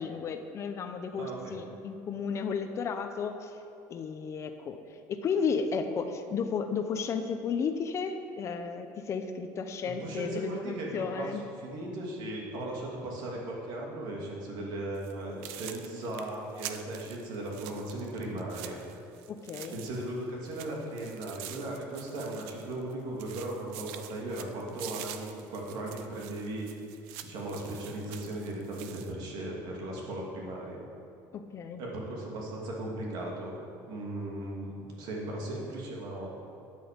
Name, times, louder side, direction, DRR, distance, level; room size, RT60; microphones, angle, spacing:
voice 1, 0.0-3.5 3.9-4.8 5.1-11.4 19.3-19.8 31.3-31.8, left 5 dB, 35° left, 7 dB, 0.7 m, -33 dB
voice 2, 1.1-1.5 9.8-18.8 19.7-26.7 27.2-30.8 31.8-33.6 33.9-36.3, right 1 dB, 60° right, -2 dB, 2.7 m, -37 dB
sound 1, 14.9-15.1 15.4-20.2 20.4-22.9 23.2-29.1, right 12 dB, 90° right, 0.7 m, -46 dB
12.0 x 8.4 x 5.2 m, 2.8 s
cardioid pair, 140°, 8 cm